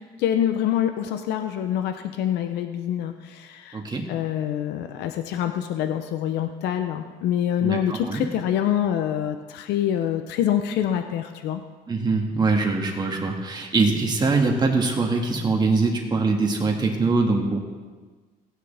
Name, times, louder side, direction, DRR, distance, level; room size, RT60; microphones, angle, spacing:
voice 1, 0.2-3.8 4.1-11.6, left 10 dB, 80° left, 7 dB, 0.7 m, -25 dB
voice 2, 3.7-4.1 7.6-8.2 11.9-17.6, right 3 dB, 25° right, 1 dB, 2.0 m, -23 dB
17.0 x 9.3 x 3.5 m, 1.4 s
cardioid pair, 110°, 17 cm